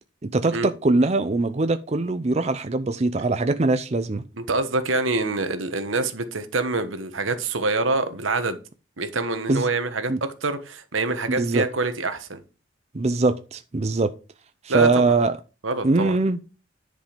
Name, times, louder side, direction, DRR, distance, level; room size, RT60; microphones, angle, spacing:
voice 1, 0.2-4.2 9.5-9.7 10.1-10.2 11.3-11.6 12.9-14.1 14.6-15.4 15.8-16.4, right 3 dB, 35° right, 0.5 m, -22 dB
voice 2, 4.4-8.6 9.0-12.4 14.7-15.0 15.6-16.2, right 3 dB, 90° right, 1.3 m, -25 dB
10.5 x 5.3 x 5.2 m
head